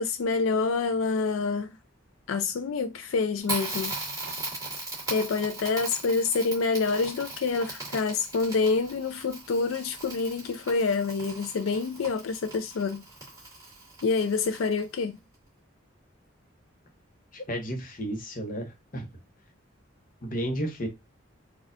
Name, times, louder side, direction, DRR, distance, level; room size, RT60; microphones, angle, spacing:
voice 1, 0.0-1.8 2.3-3.9 5.1-13.0 14.0-15.2, left 4 dB, 90° left, 0.4 m, -27 dB
Crackle, 3.4-15.0, right 2 dB, 15° right, 1.8 m, -38 dB
voice 2, 17.3-18.7 18.9-19.1 20.2-20.9, equal, 40° left, 0.8 m, -32 dB
4.1 x 2.3 x 2.5 m
head